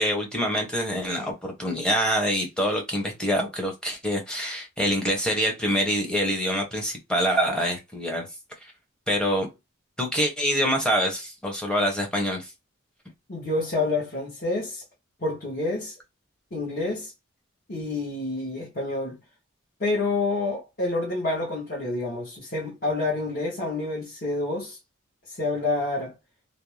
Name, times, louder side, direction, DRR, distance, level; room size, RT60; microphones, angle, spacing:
voice 1, 0.0-8.3 9.1-9.5 10.0-12.5, equal, 5° left, 0.7 m, -25 dB
voice 2, 13.3-14.8 15.2-15.9 16.5-17.1 17.7-19.2 19.8-24.8 25.3-26.1, left 2 dB, 45° left, 1.0 m, -28 dB
2.5 x 2.1 x 3.0 m
head